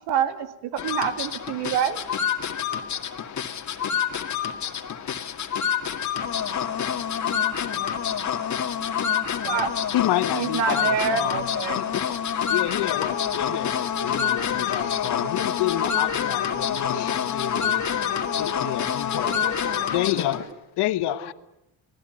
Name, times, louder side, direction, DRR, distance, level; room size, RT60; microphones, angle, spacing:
voice 1, 0.1-2.0 9.5-9.7 10.3-11.8, right 8 dB, 85° right, 2.4 m, -26 dB
sound 1, 0.8-20.5, left 8 dB, 45° left, 2.2 m, -27 dB
voice 2, 9.9-18.1 18.4-19.3 19.9-20.4 20.8-21.3, left 15 dB, 75° left, 1.3 m, -29 dB
voice 3, 19.2-20.6 21.0-21.3, right 1 dB, 20° right, 4.0 m, -39 dB
26.0 x 18.5 x 9.5 m
cardioid pair, 115°, 40 cm